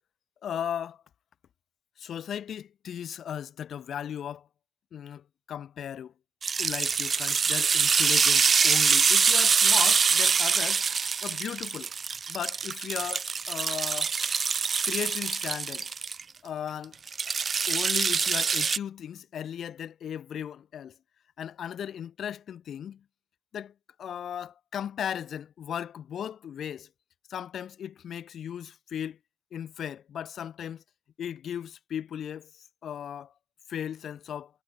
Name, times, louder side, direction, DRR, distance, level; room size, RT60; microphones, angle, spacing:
voice 1, 0.4-1.0 2.0-4.4 4.9-6.1 6.6-10.8 11.2-11.9 12.3-14.1 14.8-15.9 16.4-16.9 17.7-20.9 21.4-23.0 23.5-23.7 24.0-26.9 27.3-29.2 29.5-30.8 31.2-32.5 32.8-33.3 33.7-34.5, left 9 dB, 60° left, 4.9 m, -36 dB
sound 1, 6.4-16.2 17.1-18.8, right 5 dB, 40° right, 0.8 m, -25 dB
cardioid pair, 90°, 0 cm